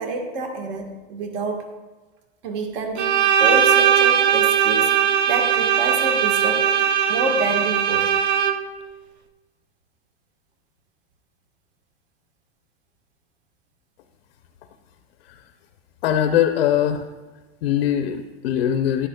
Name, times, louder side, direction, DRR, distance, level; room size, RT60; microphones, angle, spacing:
voice 1, 0.0-1.7 2.4-5.0 5.3-6.7 7.1-8.2, right 3 dB, 55° right, 4 dB, 1.4 m, -27 dB
Bowed string instrument, 3.0-8.8, right 9 dB, 70° right, 0.7 m, -19 dB
voice 2, 16.0-17.1 17.6-19.1, left 10 dB, 65° left, 7 dB, 0.6 m, -21 dB
10.5 x 10.0 x 2.2 m, 1.2 s
supercardioid pair, 180°, 34 cm